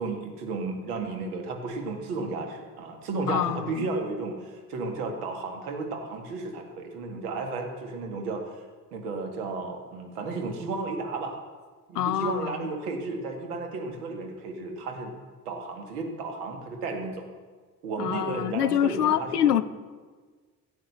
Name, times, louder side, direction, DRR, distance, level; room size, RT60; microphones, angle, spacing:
voice 1, 0.0-8.6 8.9-11.4 11.9-15.2 15.5-17.3 17.8-19.6, right 3 dB, 70° right, 4 dB, 2.0 m, -33 dB
voice 2, 3.3-3.7 12.0-12.7 18.0-19.6, left 11 dB, 85° left, 15 dB, 0.6 m, -25 dB
16.0 x 7.9 x 8.0 m, 1.5 s
figure-of-eight pair, 45°, 46 cm